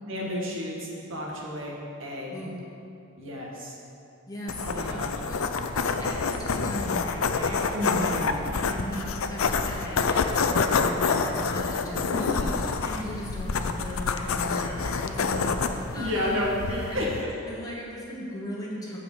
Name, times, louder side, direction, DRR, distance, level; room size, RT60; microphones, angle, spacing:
voice 1, 0.1-2.4 3.2-3.7 4.7-5.1 7.7-8.4 12.1-12.5 15.9-17.3, left 1 dB, 70° right, -3 dB, 1.6 m, -31 dB
voice 2, 4.3-12.5 12.8-17.1 17.5-19.0, equal, 15° left, -4 dB, 1.3 m, -38 dB
sound 1, 4.5-17.2, left 4 dB, 85° left, 0.5 m, -28 dB
8.6 x 4.9 x 7.1 m, 2.7 s
head